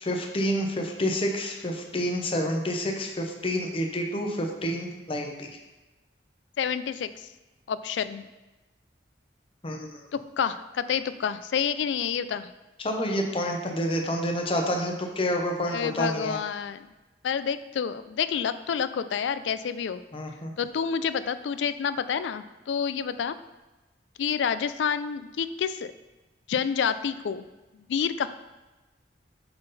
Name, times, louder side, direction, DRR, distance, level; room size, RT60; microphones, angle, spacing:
voice 1, 0.0-5.5 9.6-10.0 12.8-16.4 20.1-20.5, equal, 30° left, 2 dB, 0.8 m, -28 dB
voice 2, 6.6-7.3 7.7-8.2 10.1-12.5 15.7-16.9 17.2-20.0 20.6-23.4 24.2-25.9 26.5-27.4 27.9-28.3, left 7 dB, 85° left, 13 dB, 0.4 m, -28 dB
7.9 x 3.8 x 4.0 m, 1.1 s
head